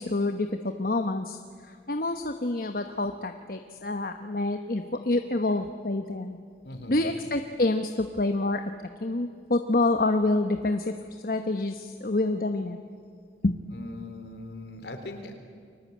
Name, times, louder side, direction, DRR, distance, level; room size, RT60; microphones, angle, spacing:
voice 1, 0.0-6.4 6.9-8.7 9.0-12.8 13.4-13.6, left 2 dB, 50° left, 6 dB, 1.1 m, -27 dB
voice 2, 6.6-7.0 13.7-15.3, left 2 dB, 70° left, 6 dB, 3.8 m, -40 dB
30.0 x 23.0 x 8.6 m, 2.2 s
head